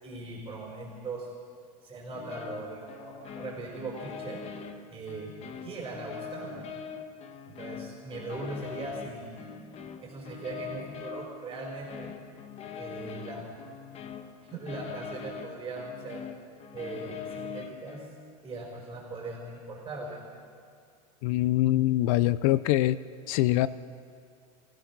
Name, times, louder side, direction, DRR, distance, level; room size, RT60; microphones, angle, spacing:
voice 1, 0.0-1.3 1.8-4.4 4.9-6.7 7.5-9.4 10.0-12.1 12.7-13.4 14.4-16.2 16.7-18.1 18.4-20.2, right 2 dB, 20° right, -2 dB, 4.8 m, -39 dB
sound 1, 2.1-18.3, left 6 dB, 35° left, 1.5 m, -43 dB
voice 2, 21.2-23.0 23.3-23.7, left 15 dB, 60° left, 17 dB, 0.6 m, -24 dB
26.5 x 16.0 x 6.1 m, 2.2 s
supercardioid pair, 120°, 19 cm